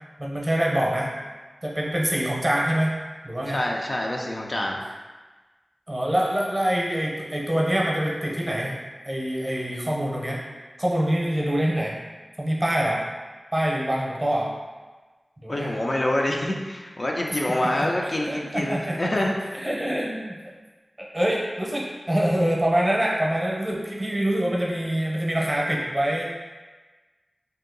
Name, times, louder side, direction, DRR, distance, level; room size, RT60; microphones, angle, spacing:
voice 1, 0.2-1.1 1.6-3.0 3.2-3.6 5.9-8.8 9.0-10.4 10.8-11.9 12.4-13.0 13.5-14.5 15.4-15.7 17.4-19.0 19.5-20.4 21.0-26.2, right 1 dB, 25° right, -3 dB, 0.7 m, -25 dB
voice 2, 3.5-4.8 15.5-19.4, left 1 dB, 50° left, -1 dB, 0.4 m, -26 dB
2.7 x 2.6 x 3.8 m, 1.3 s
wide cardioid pair, 60°, 0 cm